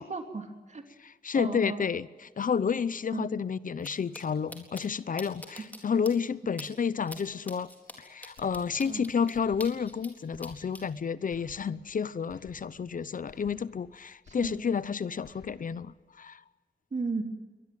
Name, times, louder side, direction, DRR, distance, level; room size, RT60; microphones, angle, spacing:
voice 1, 0.0-0.8 1.3-1.8 3.1-3.3 8.9-9.0 14.3-14.5 16.9-17.2, right 4 dB, 45° right, 6 dB, 3.0 m, -35 dB
voice 2, 1.0-2.1 2.4-7.7 8.0-16.4, left 6 dB, 55° left, 18 dB, 0.7 m, -30 dB
sound 1, 3.8-3.9 4.1-4.2 4.5-4.8 5.2-5.8 6.1-6.2 6.6-6.7 7.1-7.2 7.5-10.1 10.4-10.8, left 1 dB, 10° left, 4.0 m, -44 dB
sound 2, 8.4-9.0 9.3-10.0 10.3-11.0 11.3-12.0 12.3-13.0 13.3-14.0 14.3-14.9 15.2-15.9, left 3 dB, 80° left, 3.6 m, -56 dB
23.5 x 19.5 x 9.1 m, 1.3 s
wide cardioid pair, 170°, 16 cm